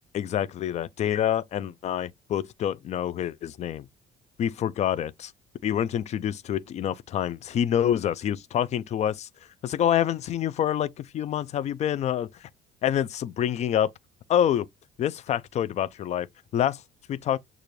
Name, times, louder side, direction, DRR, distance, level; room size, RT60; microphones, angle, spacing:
voice 1, 0.1-3.9 4.4-5.3 5.6-9.3 9.6-12.5 12.8-13.9 14.3-14.7 15.0-16.3 16.5-16.8 17.1-17.4, left 10 dB, 40° left, 0.4 m, -27 dB
6.6 x 2.4 x 3.1 m
cardioid pair, 140°, 18 cm